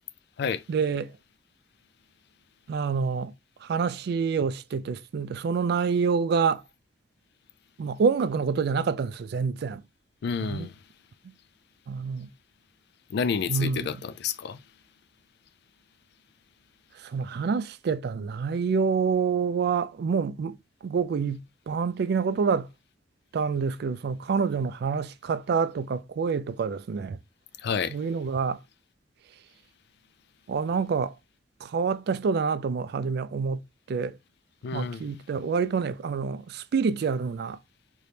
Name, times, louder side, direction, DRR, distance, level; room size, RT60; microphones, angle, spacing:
voice 1, 0.7-1.1 2.7-3.3 3.6-6.6 7.8-9.8 10.4-10.7 11.2-11.3 11.9-12.3 13.5-13.8 17.0-20.6 20.8-22.7 23.3-27.2 27.9-28.6 30.5-31.1 31.6-33.6 33.9-34.2 34.7-37.6, right 5 dB, 60° right, 0.3 m, -27 dB
voice 2, 10.2-10.8 13.1-14.6 27.6-28.0 34.6-35.0, left 6 dB, 65° left, 0.3 m, -29 dB
3.0 x 2.7 x 3.3 m
head